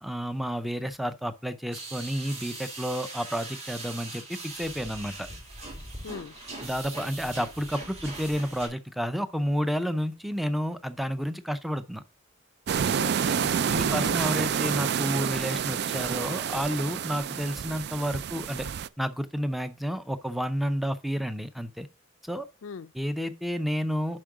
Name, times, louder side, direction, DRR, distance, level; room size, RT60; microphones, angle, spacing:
voice 1, 0.0-5.3 6.6-12.0 13.7-18.7 19.0-21.9 22.2-22.5 22.9-24.2, equal, ahead, 0.5 m, -30 dB
sound 1, 1.7-8.7, right 2 dB, 35° right, 2.8 m, -41 dB
voice 2, 6.0-6.3 12.9-14.2 14.5-14.8 22.6-22.9, left 6 dB, 90° left, 0.4 m, -41 dB
sound 2, 12.7-18.9, right 7 dB, 55° right, 0.3 m, -28 dB
7.5 x 5.4 x 4.7 m
head